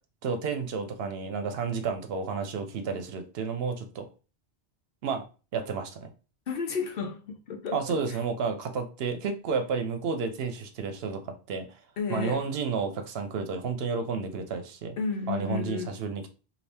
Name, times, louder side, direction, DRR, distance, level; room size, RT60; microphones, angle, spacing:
voice 1, 0.2-4.1 5.0-5.2 5.5-6.1 7.7-11.6 12.1-15.0 15.3-16.3, right 5 dB, 70° right, 0.8 m, -31 dB
voice 2, 6.5-8.2 12.0-12.4 15.0-16.0, left 4 dB, 65° left, 0.8 m, -32 dB
2.7 x 2.7 x 3.3 m
omnidirectional pair, 1.1 m